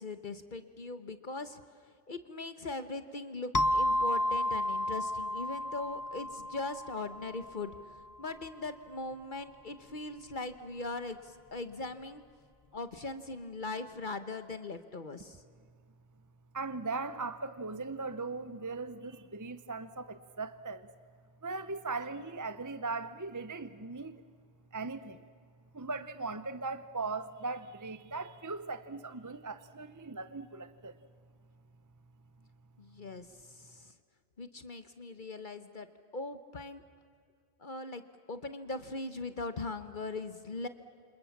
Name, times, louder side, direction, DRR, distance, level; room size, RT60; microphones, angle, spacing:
voice 1, 0.0-1.6 2.1-7.7 8.2-12.2 12.7-15.4 32.8-33.9 34.4-35.9 36.1-36.8 37.6-38.0 38.3-40.7, left 3 dB, 50° left, 1.2 m, -40 dB
sound 1, 3.5-7.9, left 1 dB, 25° left, 0.5 m, -32 dB
voice 2, 16.5-20.9 21.4-24.2 24.7-25.2 25.7-31.0, right 3 dB, 20° right, 0.7 m, -39 dB
29.0 x 26.5 x 7.2 m
omnidirectional pair, 1.1 m